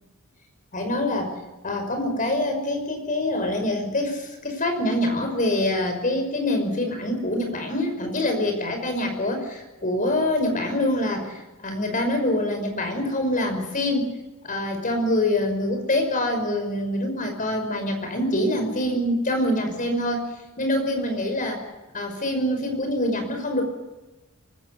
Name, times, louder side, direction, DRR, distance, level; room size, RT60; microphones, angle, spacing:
voice 1, 0.7-1.3 1.6-11.3 11.6-14.1 14.4-20.2 20.6-21.6 21.9-23.6, left 1 dB, 40° left, 5 dB, 5.8 m, -25 dB
24.5 x 15.0 x 8.5 m, 1.1 s
head